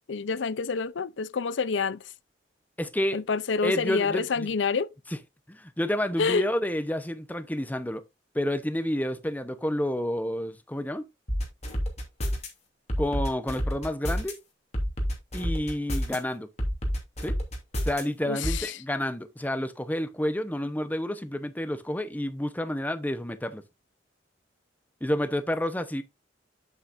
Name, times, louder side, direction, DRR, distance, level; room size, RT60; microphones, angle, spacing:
voice 1, 0.1-2.0 3.1-4.9 6.2-6.4 18.3-18.4, left 5 dB, 85° left, 0.5 m, -27 dB
voice 2, 2.8-3.2 3.6-4.5 5.1-5.2 5.5-8.0 8.3-11.0 13.0-14.3 15.3-16.5 17.2-17.4 17.8-23.6 25.0-26.0, left 1 dB, 10° left, 0.8 m, -29 dB
sound 1, 11.3-12.5 12.9-14.3 14.7-16.2 16.6-18.0 18.4-18.6, equal, 35° left, 2.7 m, -28 dB
8.9 x 8.2 x 2.6 m
head